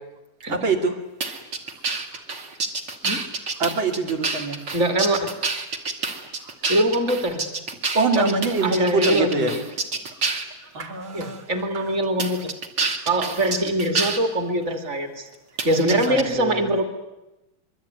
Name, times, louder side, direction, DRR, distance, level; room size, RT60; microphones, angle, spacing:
voice 1, 0.5-1.0 2.1-2.2 3.6-4.6 6.4-6.5 7.9-9.6 10.7-11.4 11.7-11.9 13.3-13.6 15.7-16.8, right 3 dB, 85° right, 3 dB, 3.5 m, -25 dB
sound 1, 1.2-10.5 11.2-11.3 12.2-14.2 15.6-16.2, right 3 dB, 65° right, 3.2 m, -28 dB
voice 2, 4.7-5.3 6.7-7.5 8.2-9.6 11.1-12.5 13.1-15.3 15.6-16.8, right 1 dB, 35° right, 6 dB, 2.9 m, -23 dB
26.5 x 23.0 x 9.5 m, 0.98 s
omnidirectional pair, 2.1 m